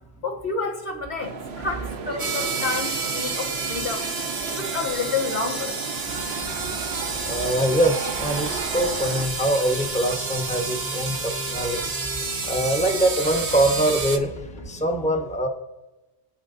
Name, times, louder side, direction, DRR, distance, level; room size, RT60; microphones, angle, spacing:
voice 1, 0.2-4.1 4.5-5.8, left 4 dB, 80° left, 1 dB, 1.8 m, -29 dB
sound 1, 1.2-9.3, right 5 dB, 75° right, 1.1 m, -34 dB
sound 2, 2.2-14.2, right 4 dB, 50° right, 1.0 m, -30 dB
sound 3, 6.1-14.8, left 1 dB, 50° left, 1.5 m, -40 dB
voice 2, 7.3-11.9 12.4-15.5, right 1 dB, 5° left, 3 dB, 0.9 m, -24 dB
24.5 x 8.6 x 2.6 m, 1.1 s
omnidirectional pair, 1.1 m